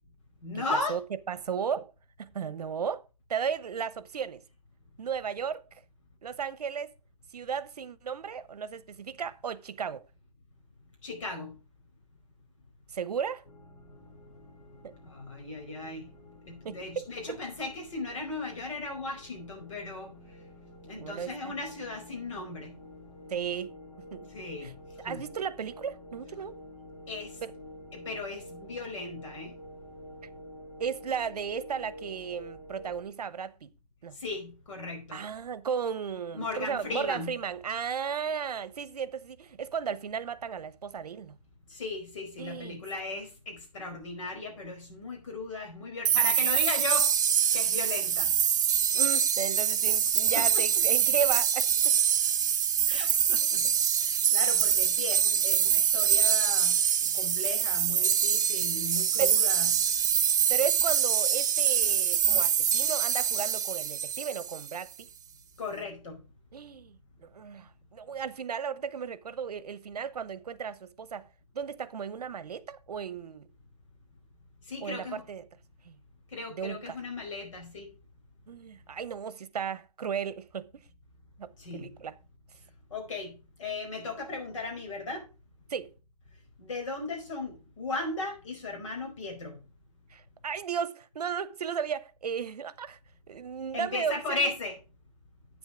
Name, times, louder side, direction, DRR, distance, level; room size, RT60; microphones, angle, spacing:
voice 1, 0.4-1.0 11.0-11.5 15.0-16.1 16.5-20.1 20.8-22.7 24.3-24.7 25.0-25.2 27.1-27.4 27.9-29.5 34.1-35.2 36.3-37.3 41.7-47.1 47.5-48.3 50.3-50.6 52.9-53.7 54.0-56.9 57.1-59.7 65.6-66.2 74.7-75.2 76.3-77.9 81.6-81.9 82.9-83.3 83.6-85.2 86.6-89.6 93.7-94.8, left 3 dB, 55° left, 4.8 m, -36 dB
voice 2, 1.3-1.9 2.2-3.0 3.3-4.4 5.0-5.8 6.2-6.9 7.3-10.0 12.9-13.5 14.8-14.9 16.6-17.4 21.0-21.5 23.3-23.7 24.1-24.3 24.6-24.7 25.0-26.6 27.4-27.5 30.8-33.7 34.0-34.1 35.1-41.3 42.4-42.8 48.9-51.7 52.9-53.7 59.2-59.4 60.5-65.1 66.5-71.3 71.5-73.5 74.8-75.4 75.8-75.9 76.5-77.0 78.5-80.8 81.4-82.1 85.7-85.9 90.1-93.0 93.3-94.5, right 7 dB, 75° right, 1.0 m, -35 dB
sound 1, 13.4-33.0, equal, 70° left, 2.9 m, -49 dB
sound 2, 46.0-64.7, right 8 dB, 30° right, 0.5 m, -25 dB
9.1 x 7.3 x 4.9 m
hypercardioid pair, 175°, 20 cm